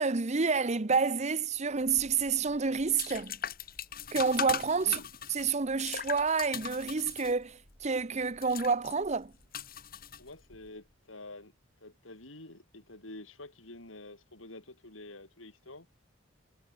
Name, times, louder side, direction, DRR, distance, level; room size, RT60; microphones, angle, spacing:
voice 1, 0.0-3.4 4.1-5.0 5.3-9.3, right 5 dB, 35° right, 0.8 m, -29 dB
sound 1, 1.8-10.7, left 8 dB, 50° left, 5.1 m, -41 dB
voice 2, 10.2-11.5 11.8-15.9, left 2 dB, 90° left, 5.8 m, -48 dB
head